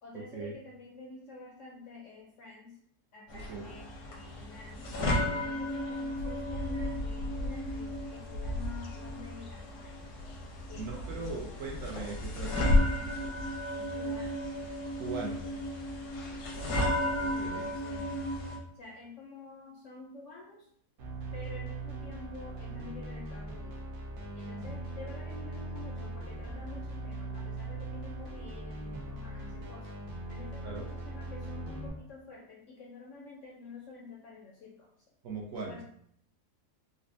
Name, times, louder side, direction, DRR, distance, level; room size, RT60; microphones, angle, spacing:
voice 1, 0.0-2.8 3.1-4.9 5.3-10.1 10.7-11.7 13.7-14.4 15.2-15.6 16.3-16.6 17.3-18.3 18.7-20.7 21.3-23.8 24.3-30.0 30.3-34.9 35.7-35.8, left 3 dB, 70° left, -2 dB, 0.7 m, -49 dB
sound 1, 3.3-18.6, left 1 dB, 90° left, 1.3 m, -33 dB
voice 2, 3.3-3.7 10.7-12.7 15.0-15.5 17.2-17.7 30.6-30.8 35.2-35.8, right 4 dB, 65° right, -2 dB, 0.9 m, -39 dB
sound 2, 21.0-31.9, right 2 dB, 90° right, 0.4 m, -40 dB
4.1 x 2.1 x 2.5 m, 0.67 s
omnidirectional pair, 1.7 m